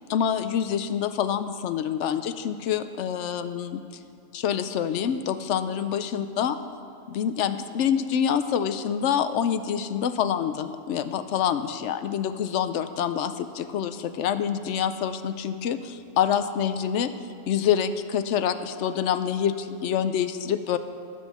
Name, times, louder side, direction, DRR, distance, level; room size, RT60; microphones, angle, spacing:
voice 1, 0.1-3.8 4.3-6.5 7.1-17.1 17.5-20.8, left 8 dB, 75° left, 11 dB, 0.9 m, -26 dB
19.0 x 8.0 x 4.2 m, 2.5 s
omnidirectional pair, 1.3 m